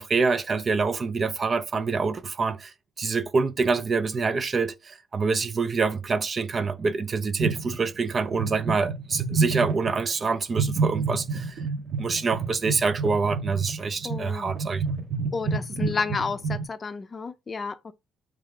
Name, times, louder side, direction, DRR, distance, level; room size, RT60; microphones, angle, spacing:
voice 1, 0.0-11.6 12.0-14.8, right 4 dB, 40° right, 0.5 m, -26 dB
sound 1, 7.4-8.0 8.3-10.0 10.5-16.7, right 4 dB, 65° right, 1.1 m, -29 dB
voice 2, 14.0-14.5 15.3-17.9, left 4 dB, 35° left, 0.5 m, -31 dB
3.4 x 3.3 x 3.6 m
cardioid pair, 90°, 0 cm